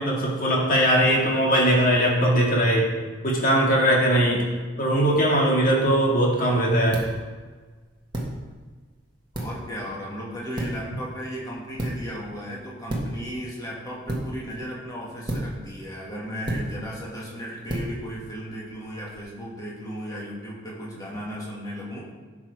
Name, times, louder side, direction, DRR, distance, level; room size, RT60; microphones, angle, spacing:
voice 1, 0.0-2.9 3.2-4.5 4.8-7.0, right 1 dB, 40° left, -3 dB, 2.2 m, -20 dB
sound 1, 5.7-19.2, right 1 dB, 20° right, 1.6 m, -35 dB
voice 2, 9.3-22.0, equal, 20° left, -5 dB, 2.3 m, -35 dB
11.5 x 6.2 x 5.0 m, 1.4 s
head